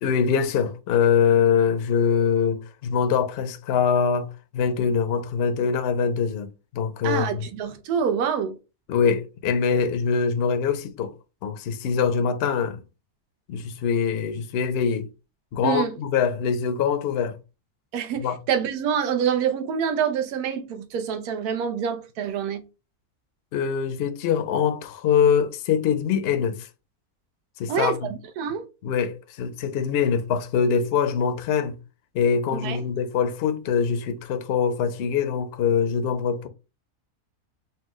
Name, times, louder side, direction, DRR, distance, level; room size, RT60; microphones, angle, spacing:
voice 1, 0.0-4.3 4.5-6.5 6.7-7.5 8.9-11.1 11.4-12.8 13.5-15.1 15.5-17.4 18.2-18.4 23.5-26.7 27.6-28.1 28.8-31.8 32.1-36.5, left 6 dB, 60° left, 0.6 m, -23 dB
voice 2, 7.0-8.6 15.6-15.9 17.9-22.6 27.7-28.7 32.5-32.8, right 7 dB, 80° right, 1.2 m, -26 dB
5.7 x 2.2 x 3.0 m
omnidirectional pair, 1.6 m